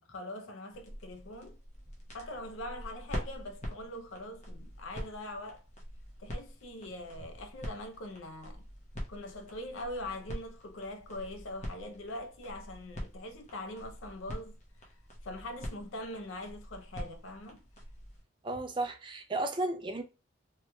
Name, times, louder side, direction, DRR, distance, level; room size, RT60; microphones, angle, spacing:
voice 1, 0.1-1.6 2.1-5.6 6.2-8.7 9.1-14.6 14.8-14.9 15.2-17.6, left 1 dB, 80° left, 0.6 m, -42 dB
sound 1, 0.7-18.2, equal, 35° left, 0.8 m, -45 dB
voice 2, 18.4-20.0, right 2 dB, 25° right, 0.3 m, -33 dB
3.0 x 2.9 x 2.2 m
head